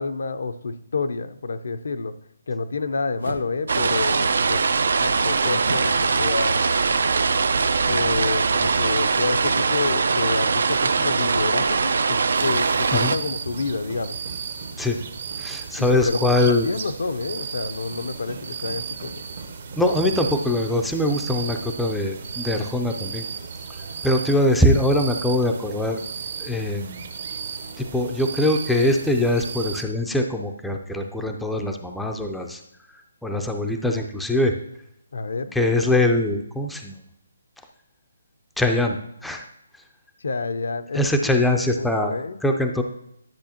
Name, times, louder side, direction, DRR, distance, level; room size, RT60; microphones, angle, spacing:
voice 1, 0.0-2.1 2.5-4.6 5.0-6.6 7.8-14.2 15.8-19.2 35.1-35.6 40.2-41.3 41.8-42.4, left 4 dB, 70° left, 10 dB, 0.6 m, -29 dB
sound 1, 3.2-3.6 4.1-4.5 5.6-6.0 6.8-7.3 8.1-8.5, right 2 dB, 85° right, 0.9 m, -36 dB
sound 2, 3.7-13.2, right 4 dB, 70° right, 0.5 m, -21 dB
sound 3, 12.3-29.8, right 6 dB, 45° right, 0.8 m, -35 dB
voice 2, 15.4-16.7 19.8-23.2 24.0-26.0 26.4-27.1 27.8-32.6 33.2-34.5 35.5-37.0 38.6-39.4 40.9-42.1 42.4-42.8, left 1 dB, ahead, 3 dB, 0.4 m, -22 dB
10.5 x 6.2 x 2.9 m, 0.77 s
hypercardioid pair, 165°, 0 cm